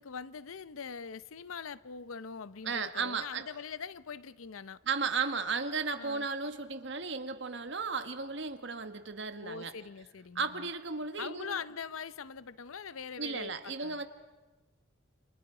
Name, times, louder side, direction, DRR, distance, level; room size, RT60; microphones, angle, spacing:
voice 1, 0.0-4.8 6.0-6.3 9.4-10.7 11.2-14.0, left 6 dB, 85° left, 0.7 m, -42 dB
voice 2, 2.6-3.4 4.9-9.7 10.3-11.6 13.2-14.0, right 5 dB, 60° right, 1.4 m, -35 dB
29.5 x 28.0 x 5.0 m
head